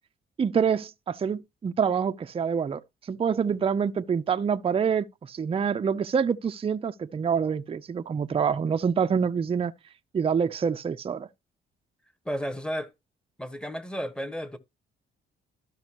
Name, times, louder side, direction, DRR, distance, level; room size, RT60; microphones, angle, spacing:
voice 1, 0.4-2.8 3.1-9.7 10.1-11.3, right 6 dB, 30° right, 0.5 m, -26 dB
voice 2, 12.2-12.9 13.4-14.6, equal, 5° left, 1.2 m, -32 dB
13.0 x 5.3 x 2.9 m
cardioid pair, 90°, 20 cm